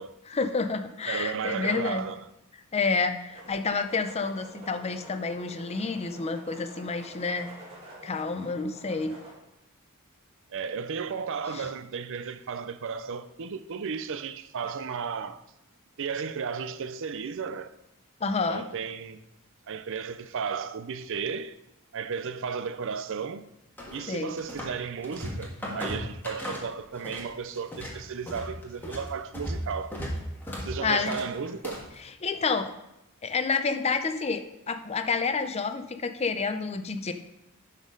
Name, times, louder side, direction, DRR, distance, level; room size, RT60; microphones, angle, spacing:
voice 1, 0.3-2.1 2.7-7.5 8.0-9.1 11.5-11.7 18.2-18.6 24.1-24.3 30.8-31.2 32.2-32.7 33.2-37.1, left 4 dB, 30° left, 0.6 m, -29 dB
voice 2, 1.1-2.3 10.5-15.4 16.0-17.7 18.5-19.2 19.7-21.6 21.9-23.5 23.9-30.0 30.6-31.9, right 6 dB, 60° right, 0.5 m, -34 dB
sound 1, 3.3-9.3, right 1 dB, 25° right, 2.2 m, -48 dB
sound 2, 23.8-24.8 25.0-27.3 27.6-32.0, equal, 10° left, 1.6 m, -36 dB
11.5 x 4.1 x 5.2 m
head